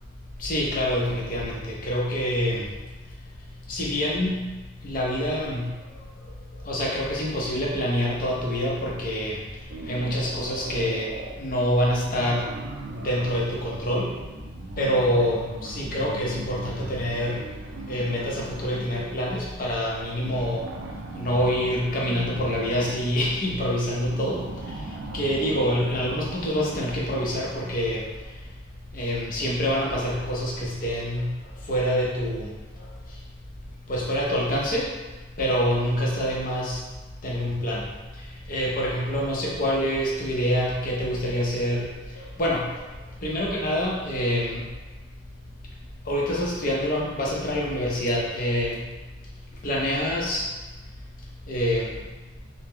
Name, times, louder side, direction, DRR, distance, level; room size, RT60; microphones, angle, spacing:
voice 1, 0.4-2.7 3.7-4.5 4.8-5.6 6.6-9.4 9.9-11.1 11.4-12.5 13.0-14.1 14.8-17.4 17.9-20.6 21.1-24.4 25.1-28.0 28.9-31.3 31.7-32.5 33.9-34.8 35.4-36.8 37.2-37.8 38.5-41.9 42.2-42.6 43.2-44.6 46.1-48.8 49.6-50.4 51.5-52.0, equal, 45° left, -3 dB, 0.6 m, -26 dB
sound 1, 9.7-11.4 12.0-19.2 20.2-27.6, right 2 dB, 65° right, 0.3 m, -39 dB
2.9 x 2.1 x 3.5 m, 1.2 s
head